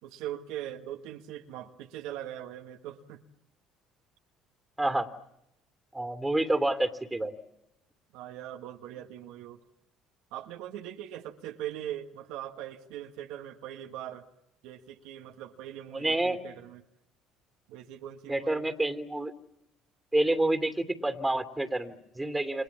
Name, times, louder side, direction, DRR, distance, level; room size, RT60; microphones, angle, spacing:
voice 1, 0.0-3.2 8.1-9.6 10.3-14.3 14.6-16.8 17.7-18.6, right 11 dB, 75° right, 1.5 m, -41 dB
voice 2, 5.9-7.3 15.9-16.4 18.3-19.3 20.1-22.6, right 2 dB, 10° right, 2.8 m, -28 dB
30.0 x 26.0 x 7.3 m
hypercardioid pair, 65°, 0 cm